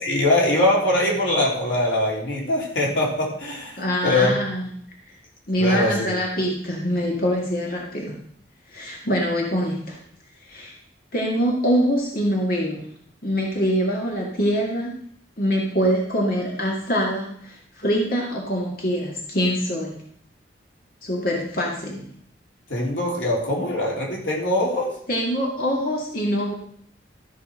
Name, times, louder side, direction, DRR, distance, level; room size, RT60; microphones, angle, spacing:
voice 1, 0.0-4.4 5.6-6.2 22.7-24.9, left 1 dB, 85° left, -2 dB, 3.4 m, -22 dB
voice 2, 3.8-4.7 5.5-8.2 8.7-10.0 10.4-10.7 11.1-12.8 13.2-14.9 15.4-19.9 21.0-22.1 25.1-26.5, equal, 50° left, -1 dB, 2.1 m, -24 dB
13.5 x 5.7 x 6.3 m, 0.63 s
head